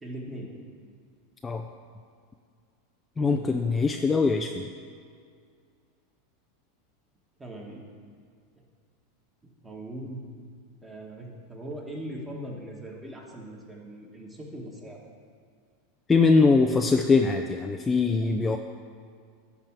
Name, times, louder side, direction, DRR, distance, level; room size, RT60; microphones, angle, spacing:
voice 1, 0.0-0.5 7.4-7.8 9.6-10.3 10.8-15.0, right 1 dB, 15° right, -2 dB, 1.8 m, -40 dB
voice 2, 3.2-4.7 16.1-18.6, left 4 dB, 15° left, 4 dB, 0.4 m, -22 dB
10.5 x 3.6 x 7.4 m, 2.2 s
hypercardioid pair, 115°, 0 cm